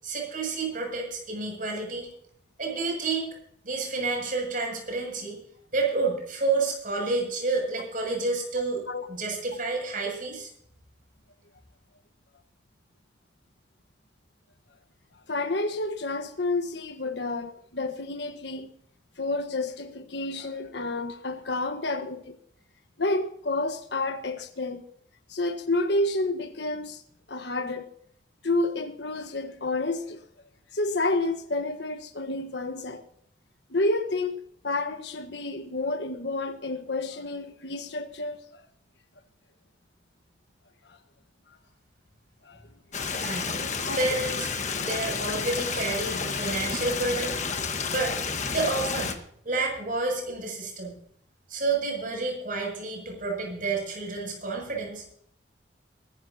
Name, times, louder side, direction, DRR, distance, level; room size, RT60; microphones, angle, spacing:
voice 1, 0.0-2.1 2.6-3.3 3.6-5.4 5.7-8.8 9.1-10.5 43.2-44.5 44.8-47.4 47.9-48.2 48.5-49.2 49.4-51.0 51.5-55.0, right 3 dB, 50° right, 7.5 m, -29 dB
voice 2, 15.3-18.7 19.2-22.4 23.0-24.8 25.3-27.0 27.3-27.9 28.4-30.2 30.7-33.0 33.7-38.5 40.9-41.0 42.4-42.6 43.8-44.0, left 2 dB, 65° left, 1.4 m, -30 dB
Stream, 42.9-49.2, left 5 dB, 40° left, 1.4 m, -30 dB
22.5 x 14.0 x 2.9 m
head